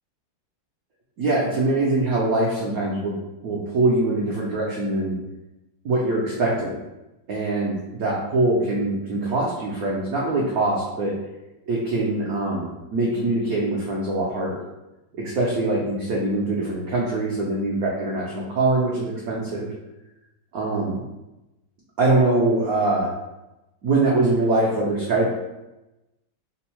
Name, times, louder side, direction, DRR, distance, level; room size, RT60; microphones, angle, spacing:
voice 1, 1.2-3.1 3.4-5.2 5.8-6.8 7.3-11.1 11.7-14.6 15.2-19.7 20.5-21.0 22.0-23.1 23.8-25.3, right 2 dB, 70° right, -4 dB, 0.8 m, -23 dB
3.5 x 2.0 x 4.3 m, 0.98 s
omnidirectional pair, 2.2 m